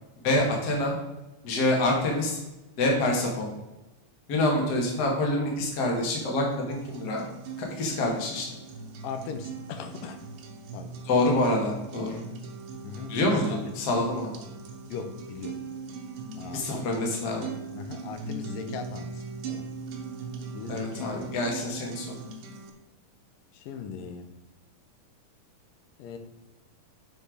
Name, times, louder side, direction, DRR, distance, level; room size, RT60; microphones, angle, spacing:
voice 1, 0.2-0.9 1.4-2.4 2.8-3.5 4.3-7.3 7.6-8.4 11.1-12.2 13.1-14.3 16.5-17.5 20.7-22.2, left 2 dB, 40° left, 0 dB, 1.6 m, -26 dB
sound 1, 6.7-22.7, right 4 dB, 90° right, 2.6 m, -40 dB
voice 2, 9.0-10.3 10.7-11.0 12.8-13.6 14.9-15.6 16.4-17.2 17.7-19.7 20.5-21.4 23.5-24.3 26.0-26.2, left 6 dB, 85° left, 7 dB, 2.4 m, -39 dB
7.9 x 4.5 x 4.9 m, 1.0 s
omnidirectional pair, 3.8 m